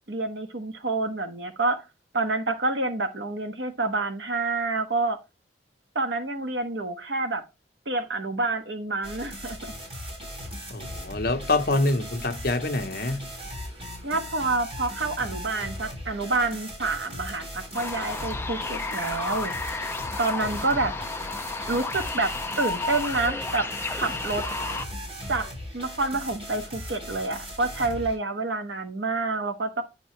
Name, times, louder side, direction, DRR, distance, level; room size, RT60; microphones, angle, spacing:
voice 1, 0.1-1.8 2.1-5.2 5.9-7.4 7.9-9.7 14.0-19.8 20.2-20.9 21.7-24.4 25.3-29.8, right 3 dB, 80° right, 1.3 m, -28 dB
sound 1, 9.0-28.2, equal, 35° right, 3.6 m, -38 dB
voice 2, 10.7-13.2, left 2 dB, 55° left, 1.0 m, -26 dB
sound 2, 17.7-24.9, left 3 dB, 15° left, 0.5 m, -32 dB
9.0 x 5.4 x 3.1 m
head